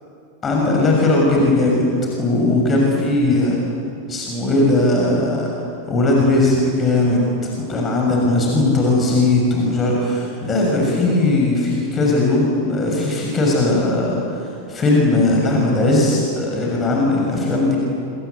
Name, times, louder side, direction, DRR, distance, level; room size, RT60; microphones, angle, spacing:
voice 1, 0.4-1.9 2.2-3.6 4.1-5.5 5.9-17.8, left 2 dB, 20° left, -1 dB, 6.5 m, -18 dB
27.0 x 26.0 x 8.4 m, 2.6 s
figure-of-eight pair, 90°, 0 cm